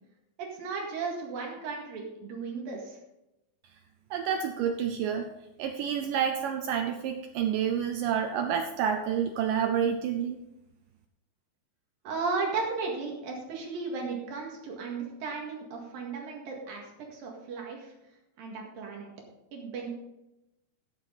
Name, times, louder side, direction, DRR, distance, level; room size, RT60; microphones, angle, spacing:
voice 1, 0.4-3.0 12.0-17.9 18.4-19.1 19.5-19.9, right 4 dB, 65° right, -1 dB, 3.5 m, -35 dB
voice 2, 4.1-5.3 5.6-10.4, right 8 dB, 85° right, 5 dB, 1.9 m, -29 dB
14.0 x 7.9 x 4.0 m, 0.92 s
omnidirectional pair, 4.7 m